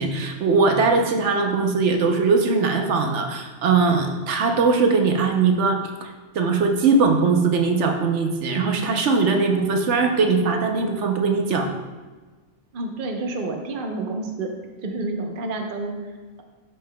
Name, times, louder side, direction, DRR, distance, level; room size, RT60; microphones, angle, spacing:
voice 1, 0.0-6.1 6.3-11.7, right 4 dB, 80° right, 3 dB, 1.0 m, -20 dB
voice 2, 12.7-14.5 14.8-16.4, right 2 dB, 50° right, 3 dB, 0.9 m, -29 dB
12.0 x 5.4 x 2.2 m, 1.3 s
omnidirectional pair, 1.2 m